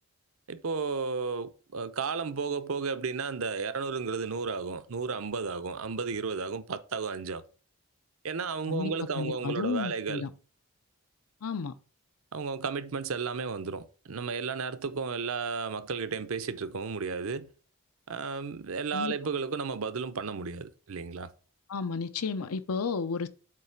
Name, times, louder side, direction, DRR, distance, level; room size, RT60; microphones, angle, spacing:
voice 1, 0.5-7.4 8.2-10.2 12.3-17.5 18.1-21.3, right 5 dB, 70° right, 0.6 m, -33 dB
voice 2, 8.7-10.3 11.4-11.7 18.9-19.1 21.7-23.3, left 4 dB, 90° left, 0.6 m, -32 dB
7.7 x 3.2 x 5.7 m
head